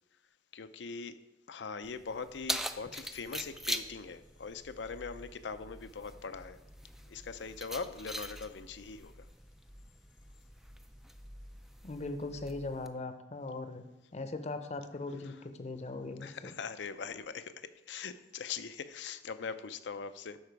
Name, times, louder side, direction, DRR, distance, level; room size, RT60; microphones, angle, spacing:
voice 1, 0.5-1.2 1.5-6.6 7.1-9.3 15.2-15.4 16.2-20.4, left 5 dB, 85° left, 11 dB, 0.5 m, -41 dB
Keys jangling, 1.8-12.9, right 1 dB, ahead, 0.3 m, -43 dB
voice 2, 11.8-13.8 14.1-16.3, left 2 dB, 40° left, 9 dB, 0.7 m, -39 dB
12.0 x 4.8 x 4.7 m, 0.98 s
head